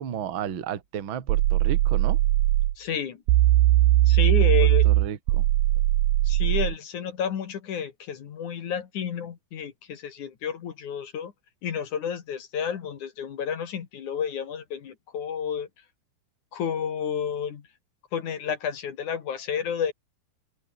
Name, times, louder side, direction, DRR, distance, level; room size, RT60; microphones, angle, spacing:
voice 1, 0.0-2.2 4.9-5.5, right 9 dB, 45° right, 1.8 m, -33 dB
sound 1, 1.3-2.7 3.3-6.7, right 15 dB, 70° right, 2.5 m, -20 dB
voice 2, 2.8-3.2 4.1-4.9 6.2-11.3 11.6-15.7 16.5-17.6 18.1-19.9, left 7 dB, 50° left, 2.9 m, -31 dB
open air
omnidirectional pair, 5.1 m